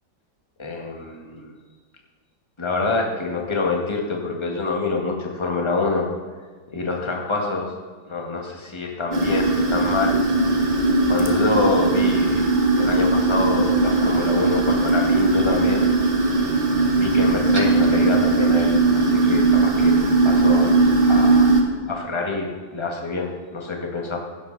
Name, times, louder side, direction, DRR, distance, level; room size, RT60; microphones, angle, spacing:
voice 1, 0.6-1.5 2.6-6.1 6.7-7.7 8.1-10.2 11.1-12.5 12.7-15.9 16.9-21.5 21.9-24.2, left 3 dB, 15° left, 0 dB, 1.8 m, -26 dB
sound 1, 9.1-21.6, right 3 dB, 30° right, 1.7 m, -19 dB
16.0 x 11.5 x 4.1 m, 1.5 s
omnidirectional pair, 2.1 m